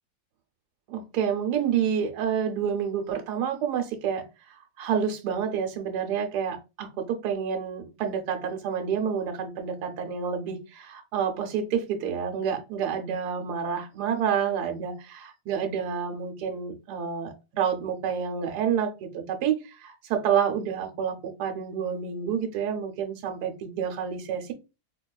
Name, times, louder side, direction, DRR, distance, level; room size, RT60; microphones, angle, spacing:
voice 1, 0.9-24.5, right 7 dB, 80° right, 4 dB, 1.2 m, -29 dB
4.4 x 2.2 x 2.3 m, 0.28 s
omnidirectional pair, 1.7 m